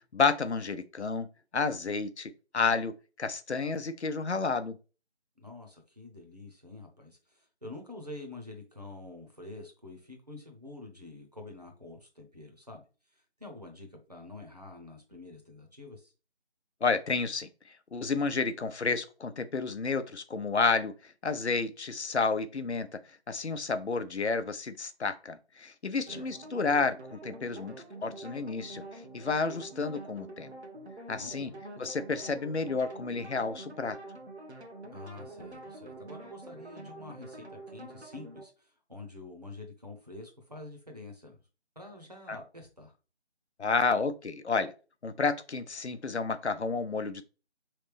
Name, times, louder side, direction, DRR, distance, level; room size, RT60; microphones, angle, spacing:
voice 1, 0.1-1.3 1.5-2.9 3.2-4.7 16.8-17.5 17.9-20.9 21.2-22.9 23.3-27.8 28.0-28.8 29.1-30.5 31.1-31.5 31.8-34.0 42.3-42.4 43.6-44.7 45.0-47.2, left 4 dB, 75° left, 0.7 m, -30 dB
voice 2, 5.4-12.8 13.1-16.1 26.1-26.3 31.1-31.6 34.9-41.4 41.8-42.9, left 2 dB, 35° right, 0.8 m, -47 dB
sound 1, 26.1-38.5, right 2 dB, 75° right, 1.2 m, -46 dB
4.0 x 3.3 x 3.3 m
figure-of-eight pair, 175°, 34 cm